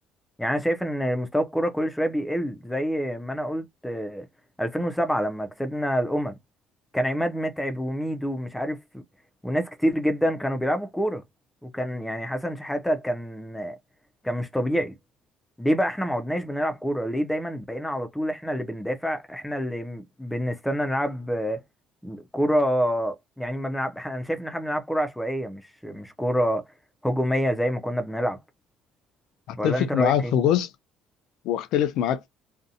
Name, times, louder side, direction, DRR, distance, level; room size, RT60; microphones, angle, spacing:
voice 1, 0.4-4.2 4.6-6.3 6.9-9.0 9.4-11.2 11.6-13.8 14.2-14.9 15.6-21.6 22.0-26.6 27.0-28.4 29.6-30.3, equal, 5° left, 0.4 m, -27 dB
voice 2, 29.5-30.7 31.4-32.3, left 10 dB, 70° left, 0.4 m, -23 dB
2.6 x 2.0 x 2.6 m
cardioid pair, 160°, 0 cm